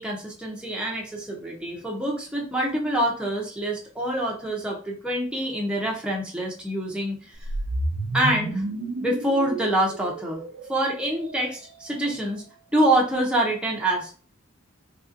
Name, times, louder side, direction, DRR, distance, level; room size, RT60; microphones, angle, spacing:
voice 1, 0.0-7.2 8.1-8.6 9.0-10.4 10.7-12.4 12.7-14.1, right 1 dB, 5° right, -2 dB, 0.5 m, -26 dB
sound 1, 7.3-11.7, right 2 dB, 65° right, 0.4 m, -31 dB
3.2 x 2.6 x 2.5 m, 0.40 s
head